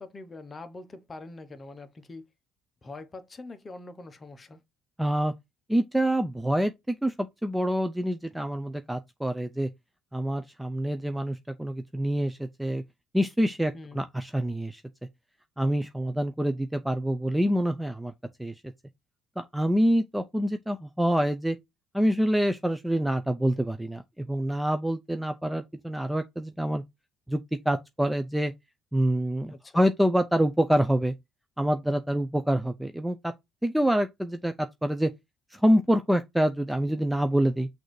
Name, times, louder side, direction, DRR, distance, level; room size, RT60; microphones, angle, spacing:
voice 1, 0.0-2.3 2.8-4.6 13.7-14.1 29.5-29.9, left 3 dB, 25° left, 0.7 m, -44 dB
voice 2, 5.0-5.3 5.7-7.1 7.4-9.7 10.1-12.8 13.1-14.8 15.6-18.1 18.4-18.5 19.4-21.6 21.9-26.8 27.3-27.4 27.7-28.5 28.9-31.1 31.6-33.3 33.6-35.1 35.5-37.7, equal, 5° right, 0.3 m, -26 dB
6.2 x 2.6 x 3.1 m
cardioid pair, 125°, 0 cm